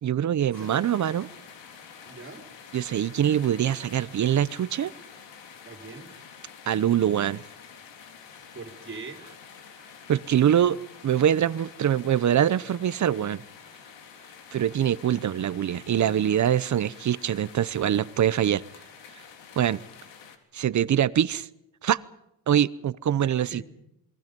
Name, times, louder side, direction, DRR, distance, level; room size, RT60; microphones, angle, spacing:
voice 1, 0.0-1.3 2.7-4.9 6.7-7.4 10.1-13.4 14.5-18.6 19.6-19.8 20.5-21.5 21.8-22.0 22.5-23.6, right 10 dB, 40° right, 17 dB, 0.8 m, -24 dB
sound 1, 0.5-20.4, left 7 dB, 90° left, 3.8 m, -48 dB
voice 2, 2.1-2.5 5.6-6.1 8.5-9.2 23.5-23.6, right 4 dB, 25° right, 4 dB, 4.1 m, -41 dB
28.0 x 22.0 x 5.3 m, 0.84 s
cardioid pair, 135°, 43 cm